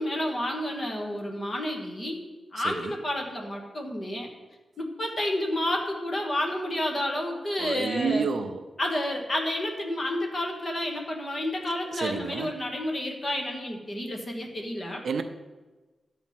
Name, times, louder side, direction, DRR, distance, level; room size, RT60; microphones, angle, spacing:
voice 1, 0.0-2.2 2.5-4.3 4.8-8.3 8.8-15.0, left 1 dB, 30° left, 1 dB, 1.5 m, -30 dB
voice 2, 7.6-8.6 11.9-12.5 15.0-15.2, right 5 dB, 65° right, 8 dB, 0.6 m, -30 dB
11.0 x 4.3 x 7.5 m, 1.2 s
wide cardioid pair, 175°, 0 cm